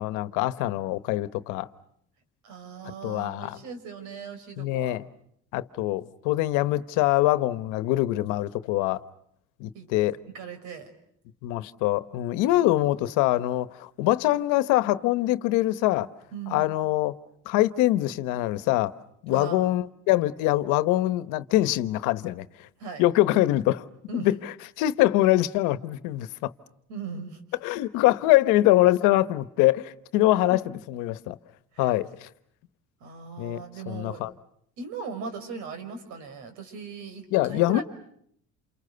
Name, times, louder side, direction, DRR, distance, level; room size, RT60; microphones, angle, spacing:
voice 1, 0.0-1.7 3.0-3.6 4.6-5.0 5.5-9.0 9.6-10.2 11.4-16.1 16.5-17.1 17.4-18.9 19.2-22.7 23.0-23.8 24.1-26.5 27.6-30.6 30.9-31.4 31.8-32.3 33.4-34.3 37.3-37.8, left 16 dB, 85° left, 1.1 m, -24 dB
voice 2, 2.4-5.0 9.7-9.9 10.3-10.9 16.3-16.7 19.3-19.7 22.8-23.0 24.1-24.4 26.9-27.4 30.5-30.6 31.7-32.0 33.0-34.2 34.8-37.8, right 5 dB, 75° right, 5.7 m, -38 dB
29.0 x 28.5 x 6.8 m
cardioid pair, 110°, 30 cm